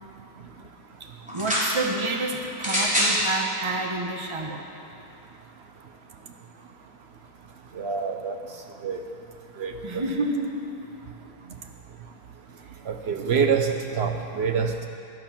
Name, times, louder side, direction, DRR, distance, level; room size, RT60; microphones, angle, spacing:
voice 1, 1.0-4.6 9.8-10.7 13.2-13.3, right 2 dB, 20° right, 2 dB, 0.9 m, -29 dB
sound 1, 1.3-1.7 2.6-3.2 4.1-4.2, equal, 5° right, 3.3 m, -24 dB
voice 2, 7.7-8.4 8.8-9.0 9.6-9.7 12.9-14.9, right 6 dB, 75° right, 4 dB, 0.5 m, -25 dB
17.0 x 12.0 x 5.9 m, 2.7 s
omnidirectional pair, 2.3 m